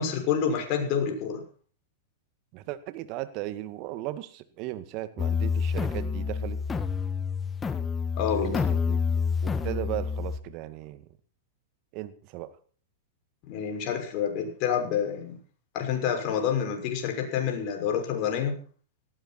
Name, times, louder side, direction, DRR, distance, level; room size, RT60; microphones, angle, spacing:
voice 1, 0.0-1.4 8.2-8.7 13.5-15.4 15.7-18.6, left 7 dB, 50° left, 4 dB, 6.1 m, -28 dB
voice 2, 2.5-6.6 8.3-9.0 9.4-11.0 11.9-12.5, right 15 dB, 50° right, 12 dB, 2.0 m, -36 dB
sound 1, 5.2-10.4, left 5 dB, 15° left, 1.8 m, -28 dB
18.0 x 15.0 x 4.4 m, 0.43 s
hypercardioid pair, 110°, 0 cm